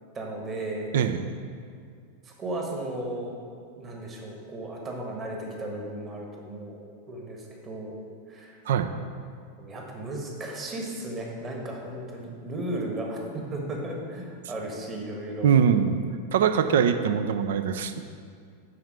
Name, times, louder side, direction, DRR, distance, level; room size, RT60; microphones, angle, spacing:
voice 1, 0.1-0.9 2.2-3.3 3.8-6.8 7.1-7.9 8.3-8.6 9.6-15.5, right 1 dB, 25° right, 0 dB, 1.4 m, -35 dB
voice 2, 15.4-16.0 16.3-18.0, right 7 dB, 60° right, 9 dB, 0.4 m, -22 dB
9.9 x 4.1 x 4.7 m, 2.2 s
figure-of-eight pair, 90°, 0 cm